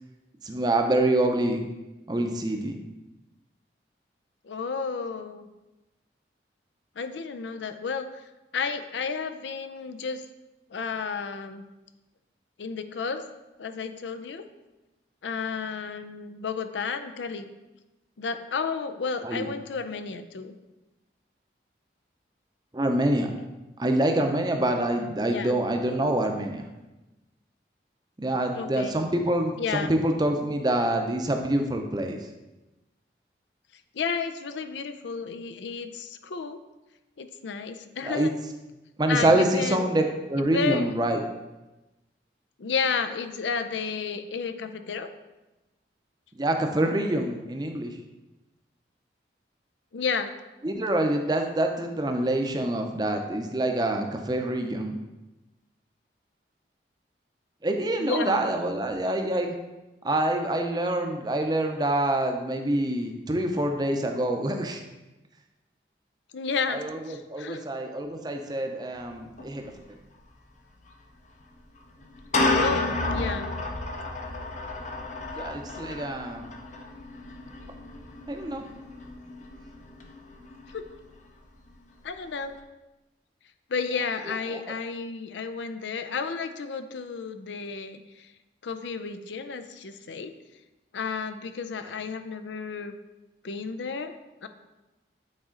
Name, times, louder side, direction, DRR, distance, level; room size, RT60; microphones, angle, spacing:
voice 1, 0.4-1.6 2.1-2.8 19.2-19.5 22.7-23.3 23.8-26.6 28.2-32.2 38.0-38.3 39.0-41.2 46.4-47.9 50.6-54.9 57.6-59.5 60.0-64.8 66.7-69.6 75.4-76.5 78.3-78.6 84.3-84.6, right 1 dB, 25° right, 4 dB, 0.6 m, -26 dB
voice 2, 4.4-5.5 7.0-8.1 8.5-10.2 10.7-11.6 12.6-13.2 13.6-14.4 15.2-17.5 18.2-20.5 25.3-25.5 28.5-29.0 29.6-29.9 33.9-36.6 37.2-38.3 39.1-39.9 40.5-40.9 42.6-45.1 49.9-50.3 58.0-58.4 66.3-67.6 72.5-73.5 80.7-80.8 82.0-82.6 83.7-88.3 88.6-90.3 90.9-92.9 93.4-94.2 94.4-94.5, left 5 dB, 80° left, 9 dB, 0.5 m, -32 dB
sound 1, 68.9-69.1 69.4-69.5 70.9-71.0 72.0-81.1, left 2 dB, 40° left, 0.7 m, -31 dB
8.8 x 4.2 x 3.8 m, 1.0 s
head